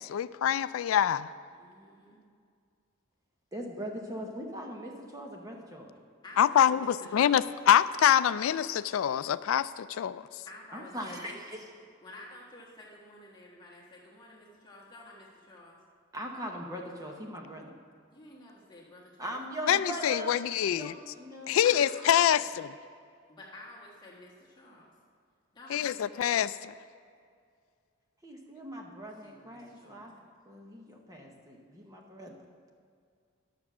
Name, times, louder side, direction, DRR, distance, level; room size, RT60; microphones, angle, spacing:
voice 1, 0.1-1.3 6.4-10.2 19.7-20.9 21.5-22.4 25.7-26.7, left 10 dB, 80° left, 16 dB, 0.3 m, -25 dB
voice 2, 1.5-2.2 6.2-7.4 10.4-11.4 12.0-15.8 18.1-19.3 19.6-20.3 20.6-21.1 21.6-22.5 23.3-24.9 25.5-26.4 29.2-30.3, left 1 dB, 20° left, -5 dB, 1.5 m, -50 dB
voice 3, 3.5-5.9 10.7-11.6 16.1-17.7 19.2-20.3 20.8-21.7 28.2-30.1 30.5-32.3, equal, 15° right, 0 dB, 1.0 m, -40 dB
11.5 x 6.9 x 6.1 m, 2.2 s
head